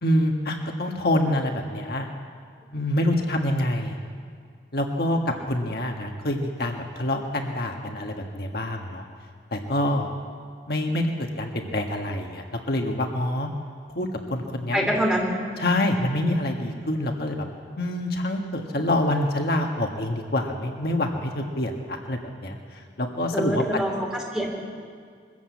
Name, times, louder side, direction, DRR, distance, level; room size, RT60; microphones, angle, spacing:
voice 1, 0.0-2.1 2.7-4.0 4.7-9.0 9.5-10.1 10.7-11.1 11.4-13.5 13.9-14.9 15.6-17.4 17.8-22.6 23.0-23.6, left 1 dB, 60° left, 2 dB, 1.6 m, -26 dB
voice 2, 14.7-15.3 23.3-24.5, equal, 5° right, -2 dB, 3.5 m, -25 dB
22.0 x 14.0 x 8.4 m, 2.2 s
head